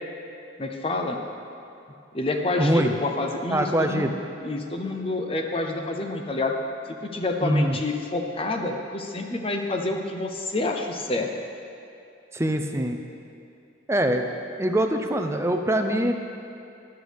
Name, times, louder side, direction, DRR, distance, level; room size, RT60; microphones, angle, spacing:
voice 1, 0.6-1.2 2.1-4.1 4.4-6.6 6.9-11.3, left 2 dB, 30° left, 3 dB, 0.6 m, -28 dB
voice 2, 2.6-2.9 3.5-4.2 7.4-7.7 12.3-13.0 13.9-14.3 14.6-16.1, right 1 dB, 15° right, 5 dB, 0.5 m, -23 dB
12.5 x 11.0 x 3.4 m, 2.6 s
head